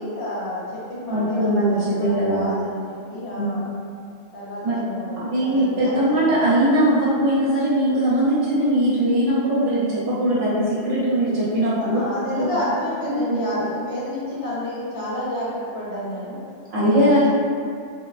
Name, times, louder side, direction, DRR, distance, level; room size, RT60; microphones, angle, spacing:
voice 1, 0.0-3.7 4.3-6.5 11.8-16.4 17.0-17.3, left 1 dB, 65° left, -8 dB, 0.9 m, -30 dB
voice 2, 1.1-2.4 3.3-3.6 4.6-4.7 5.3-12.0 12.4-12.5 13.0-13.4 16.7-17.3, right 1 dB, 70° right, -9 dB, 1.1 m, -20 dB
2.5 x 2.1 x 2.3 m, 2.3 s
omnidirectional pair, 1.3 m